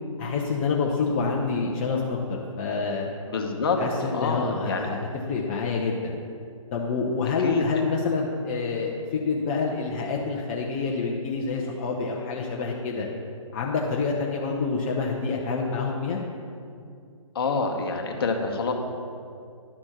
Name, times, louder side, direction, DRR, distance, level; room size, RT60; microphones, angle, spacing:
voice 1, 0.2-3.1 3.8-5.0 5.3-6.1 6.7-13.1 13.5-16.2, left 4 dB, 25° left, -2 dB, 0.6 m, -27 dB
voice 2, 3.3-3.8 4.0-4.9 7.4-7.6 17.3-18.7, left 4 dB, 45° left, 3 dB, 1.1 m, -26 dB
11.0 x 4.3 x 5.8 m, 2.4 s
figure-of-eight pair, 145°, 18 cm